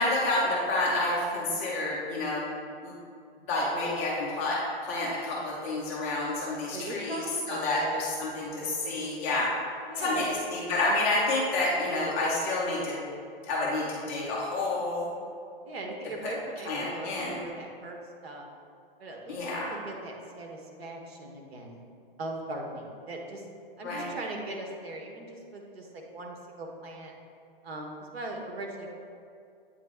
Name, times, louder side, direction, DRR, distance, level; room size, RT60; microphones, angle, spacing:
voice 1, 0.0-2.4 2.8-2.9 3.5-4.6 4.9-7.2 7.5-9.5 10.0-12.9 13.4-15.1 16.7-17.5 19.3-19.7 23.8-24.1, left 2 dB, 15° left, -5 dB, 0.4 m, -29 dB
voice 2, 6.7-8.0 9.8-10.4 15.6-18.5 19.0-21.8 22.2-23.4 23.8-27.1 27.6-28.9, right 2 dB, 85° right, 1 dB, 1.3 m, -39 dB
8.5 x 3.2 x 3.6 m, 2.4 s
hypercardioid pair, 165°, 30 cm